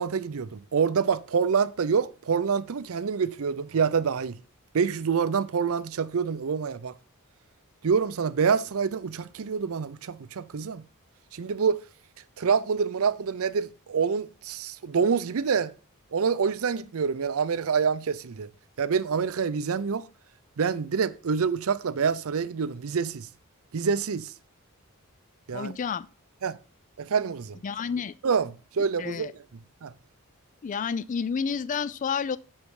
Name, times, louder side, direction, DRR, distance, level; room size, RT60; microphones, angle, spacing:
voice 1, 0.0-4.4 4.7-6.9 7.8-10.9 11.3-11.8 12.4-15.7 16.1-18.5 18.8-20.1 20.6-23.3 23.7-24.3 25.5-25.7 26.4-26.6 27.0-27.6 28.2-29.3 29.8-29.9, right 6 dB, 65° right, 0.5 m, -26 dB
voice 2, 25.5-26.1 27.6-28.1 29.0-29.3 30.6-32.4, left 6 dB, 35° left, 0.3 m, -30 dB
7.3 x 5.3 x 4.8 m
head